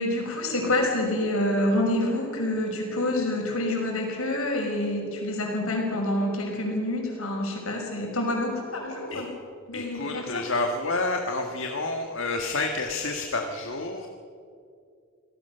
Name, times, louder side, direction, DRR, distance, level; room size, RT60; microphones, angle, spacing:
voice 1, 0.0-9.3 9.7-10.4, left 1 dB, 80° left, 1 dB, 5.8 m, -27 dB
voice 2, 9.7-14.1, left 2 dB, 65° left, 3 dB, 1.6 m, -29 dB
26.0 x 18.0 x 6.8 m, 2.4 s
head